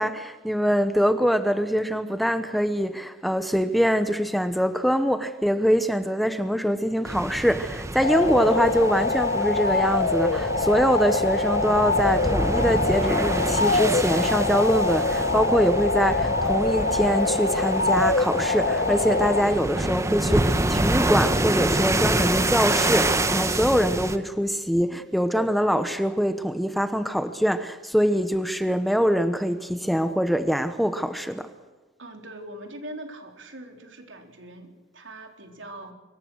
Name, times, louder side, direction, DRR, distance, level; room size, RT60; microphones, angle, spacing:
voice 1, 0.0-31.5, equal, ahead, 1.0 m, -24 dB
sound 1, 7.1-24.2, right 1 dB, 15° right, 1.3 m, -27 dB
sound 2, 8.0-19.4, left 3 dB, 55° left, 1.7 m, -24 dB
sound 3, 16.8-21.6, right 1 dB, 35° right, 3.7 m, -39 dB
voice 2, 32.0-35.9, right 1 dB, 85° right, 4.0 m, -41 dB
25.5 x 23.5 x 6.4 m
head